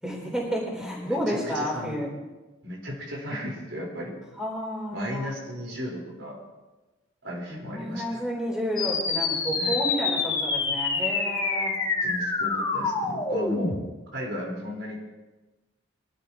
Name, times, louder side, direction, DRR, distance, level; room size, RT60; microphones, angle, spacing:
voice 1, 0.0-2.1 4.4-5.3 7.5-11.8, equal, 5° right, -3 dB, 3.9 m, -31 dB
voice 2, 0.8-2.0 2.6-4.1 4.9-6.4 7.2-8.2 9.5-9.8 12.0-13.8 14.1-15.0, left 1 dB, 70° right, -3 dB, 4.6 m, -35 dB
sound 1, 8.8-13.8, left 4 dB, 25° left, 2.6 m, -27 dB
24.0 x 13.0 x 3.1 m, 1.1 s
head